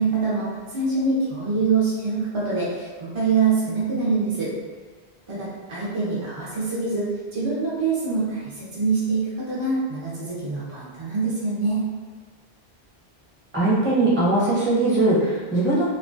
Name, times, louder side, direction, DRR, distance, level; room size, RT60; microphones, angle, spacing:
voice 1, 0.0-4.5 5.3-11.8, right 4 dB, 45° right, -8 dB, 0.4 m, -25 dB
voice 2, 13.5-15.9, right 2 dB, 10° right, -9 dB, 0.7 m, -20 dB
2.4 x 2.1 x 2.5 m, 1.4 s
omnidirectional pair, 1.1 m